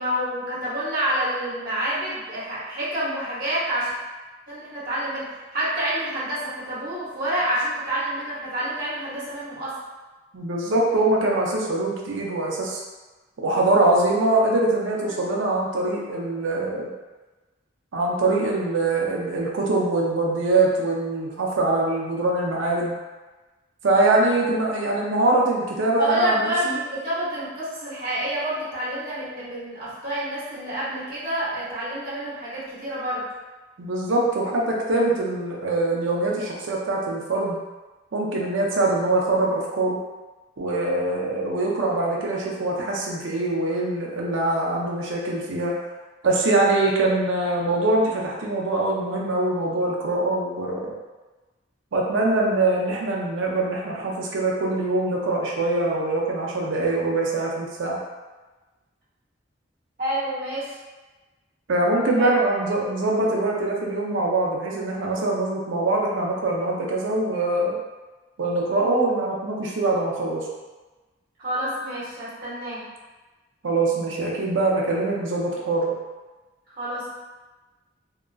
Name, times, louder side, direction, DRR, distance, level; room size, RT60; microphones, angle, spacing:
voice 1, 0.0-3.9 4.5-5.2 5.5-9.7 15.2-15.3 26.0-33.2 60.0-60.7 62.2-62.3 71.4-72.8 76.8-77.1, right 1 dB, 50° right, -9 dB, 1.0 m, -28 dB
voice 2, 10.3-12.8 13.4-16.9 17.9-22.9 23.8-26.8 33.8-37.6 38.1-40.0 40.6-45.7 46.2-50.8 51.9-58.0 61.7-67.8 68.4-70.5 73.6-75.9, right 2 dB, 75° right, -2 dB, 0.5 m, -23 dB
2.8 x 2.5 x 2.2 m, 1.2 s
head